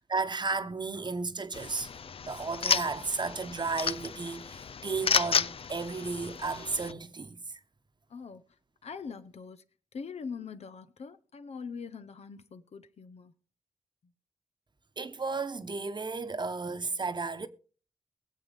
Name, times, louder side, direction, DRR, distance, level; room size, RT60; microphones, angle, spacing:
voice 1, 0.0-1.9 2.2-7.6 15.0-17.5, right 4 dB, 45° right, 1.1 m, -33 dB
sound 1, 1.5-6.9, left 6 dB, 60° left, 0.5 m, -32 dB
voice 2, 8.1-8.4 8.8-9.6 9.9-13.3 14.0-14.1, left 5 dB, 75° left, 1.0 m, -42 dB
22.5 x 7.6 x 3.5 m
cardioid pair, 60°, 11 cm